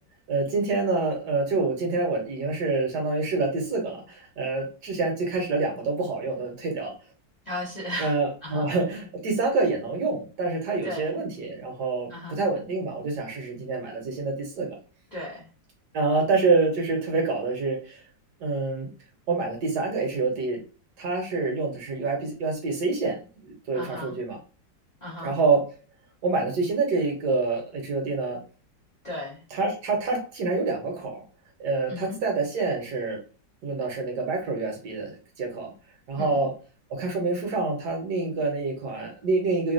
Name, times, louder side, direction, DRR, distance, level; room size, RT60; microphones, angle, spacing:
voice 1, 0.3-6.9 8.0-14.7 15.9-18.0 18.4-18.9 19.3-20.6 21.0-24.4 25.2-25.7 26.2-28.4 29.5-31.2 31.6-33.2 33.6-35.7 36.1-36.5 36.9-39.7, right 3 dB, 65° right, 1 dB, 1.4 m, -27 dB
voice 2, 7.5-8.2 8.4-8.7 10.8-11.1 12.1-12.4 15.1-15.5 23.7-24.1 25.0-25.3 29.0-29.4 31.9-32.2 36.1-36.4, left 1 dB, 50° left, -5 dB, 0.5 m, -35 dB
3.2 x 2.3 x 2.5 m, 0.36 s
omnidirectional pair, 2.0 m